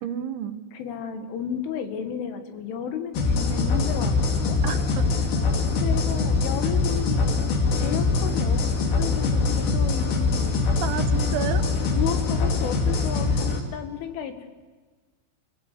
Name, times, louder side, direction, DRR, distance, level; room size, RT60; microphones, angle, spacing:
voice 1, 0.0-0.6 4.6-5.1 10.8-11.7, right 11 dB, 75° right, 9 dB, 3.4 m, -31 dB
voice 2, 0.7-4.6 5.8-7.4 7.8-8.6 9.0-10.6 11.2-11.3 11.9-14.5, left 8 dB, 80° left, 7 dB, 4.3 m, -33 dB
sound 1, 3.1-13.6, left 3 dB, 65° left, 4.5 m, -23 dB
28.5 x 16.5 x 8.4 m, 1.4 s
omnidirectional pair, 5.6 m